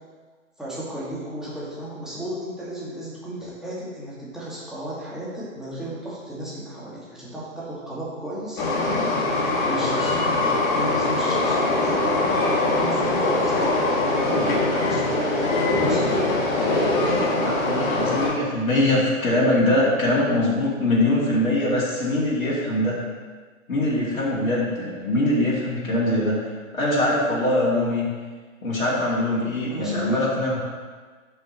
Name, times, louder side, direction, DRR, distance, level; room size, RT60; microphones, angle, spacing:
voice 1, 0.6-16.0 29.7-30.2, right 1 dB, ahead, -9 dB, 1.8 m, -34 dB
Train, 8.6-18.3, left 2 dB, 40° left, 2.0 m, -22 dB
voice 2, 9.8-10.3 17.0-23.0 23.7-26.4 26.7-28.0 28.6-30.6, left 1 dB, 75° left, -6 dB, 2.5 m, -22 dB
11.5 x 5.6 x 3.0 m, 1.4 s
figure-of-eight pair, 125°, 41 cm